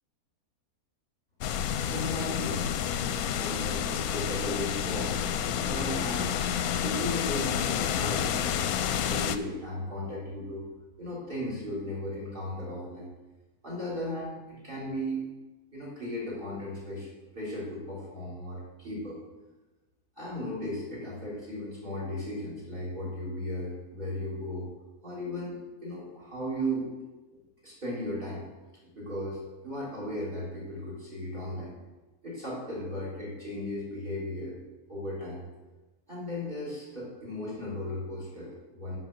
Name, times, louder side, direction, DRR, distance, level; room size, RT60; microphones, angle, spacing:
sound 1, 1.4-9.4, left 9 dB, 70° left, 1.0 m, -29 dB
voice 1, 1.8-2.7 3.4-5.2 5.5-6.3 6.8-8.4 9.0-10.7 11.0-13.1 13.6-15.3 15.7-17.1 17.3-19.2 20.2-24.7 25.0-26.9 27.3-28.4 28.8-31.7 32.2-34.6 34.9-35.4 36.1-39.0, left 1 dB, 30° right, -5 dB, 3.5 m, -36 dB
11.0 x 5.2 x 7.3 m, 1.1 s
omnidirectional pair, 1.7 m